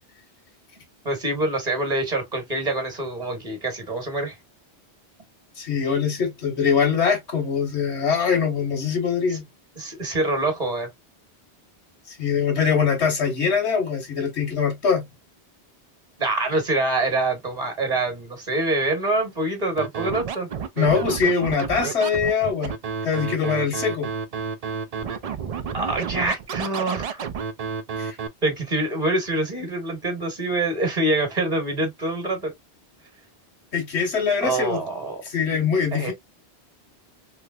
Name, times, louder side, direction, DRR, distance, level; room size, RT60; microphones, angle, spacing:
voice 1, 1.0-4.4 9.3-9.4 9.8-10.9 16.2-20.5 25.7-27.2 28.4-32.5 34.4-35.2 35.9-36.1, right 2 dB, 35° right, 1.2 m, -25 dB
voice 2, 5.6-9.4 12.1-15.1 20.8-22.7 23.0-24.1 28.0-28.2 33.7-34.8 35.2-36.1, left 6 dB, 75° left, 1.5 m, -23 dB
Scratching (performance technique), 19.8-28.3, right 6 dB, 60° right, 0.4 m, -30 dB
3.2 x 3.1 x 2.3 m
omnidirectional pair, 1.1 m